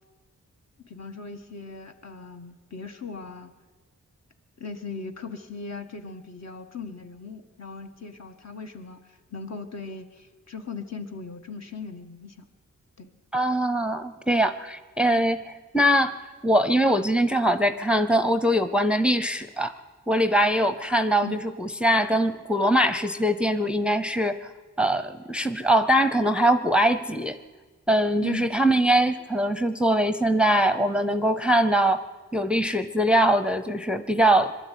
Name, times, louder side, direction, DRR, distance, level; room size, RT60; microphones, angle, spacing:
voice 1, 0.8-3.5 4.6-12.5 13.0-13.1 21.2-21.4 28.2-28.6, left 4 dB, 55° left, 5 dB, 1.6 m, -39 dB
voice 2, 13.3-16.2 16.4-19.7 20.1-24.5 24.8-27.4 27.9-32.0 32.3-34.5, right 1 dB, 5° right, 11 dB, 0.7 m, -22 dB
22.5 x 12.5 x 9.3 m, 1.3 s
wide cardioid pair, 110°, 31 cm